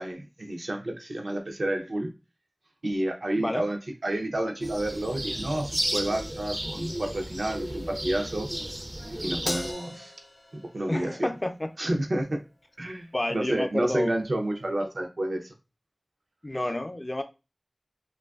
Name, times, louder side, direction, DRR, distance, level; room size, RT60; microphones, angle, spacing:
voice 1, 0.0-2.1 2.8-8.5 9.2-10.1 10.5-11.3 11.8-12.4 12.8-15.5, right 1 dB, 90° right, 3 dB, 0.5 m, -30 dB
sound 1, 4.6-9.7, right 1 dB, 35° right, 0.4 m, -34 dB
Crash cymbal, 9.5-12.0, left 1 dB, 80° left, 0.6 m, -38 dB
voice 2, 10.9-11.7 13.1-14.2 16.4-17.2, left 1 dB, 35° left, 6 dB, 0.4 m, -30 dB
2.6 x 2.2 x 2.3 m, 0.27 s
wide cardioid pair, 50°, 0 cm